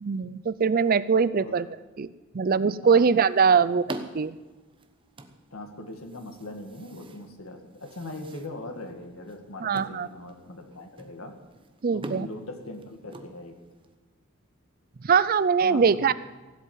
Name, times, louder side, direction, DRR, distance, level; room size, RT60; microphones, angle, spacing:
voice 1, 0.0-1.7 2.0-2.1 2.3-3.8 4.1-4.4 9.6-10.1 11.8-12.3 15.0-16.1, right 6 dB, 45° right, 17 dB, 0.5 m, -22 dB
sound 1, 2.9-13.9, right 2 dB, 25° right, 1.0 m, -45 dB
voice 2, 5.5-11.3 11.9-13.5 15.6-16.1, left 1 dB, 80° left, 4 dB, 2.2 m, -40 dB
16.5 x 8.2 x 9.3 m, 1.2 s
head